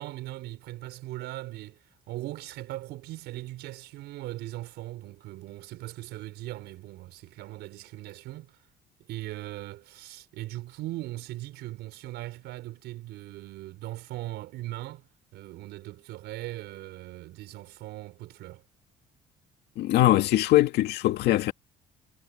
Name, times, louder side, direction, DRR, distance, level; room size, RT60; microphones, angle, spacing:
voice 1, 0.0-8.6 9.0-15.1 15.3-18.6, right 16 dB, 85° right, 5.2 m, -39 dB
voice 2, 19.8-21.5, left 15 dB, 80° left, 1.9 m, -22 dB
cardioid pair, 110°, 17 cm